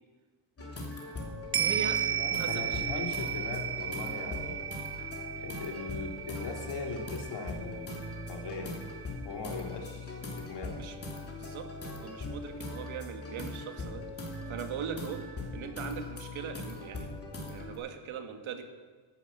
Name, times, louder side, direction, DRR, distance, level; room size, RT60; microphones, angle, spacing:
sound 1, 0.6-17.8, left 2 dB, 30° left, 3.0 m, -41 dB
voice 1, 0.6-1.2 1.6-2.0 2.3-3.1 10.8-11.0 11.4-15.2 15.5-17.1 17.5-18.6, right 7 dB, 70° right, 6 dB, 1.9 m, -40 dB
sound 2, 1.5-10.1 10.4-10.5, right 9 dB, 30° right, 0.4 m, -35 dB
voice 2, 2.1-4.6 5.4-8.7 9.2-10.8, left 4 dB, 55° left, 2 dB, 3.0 m, -39 dB
15.0 x 11.0 x 6.9 m, 1.4 s
cardioid pair, 135°, 49 cm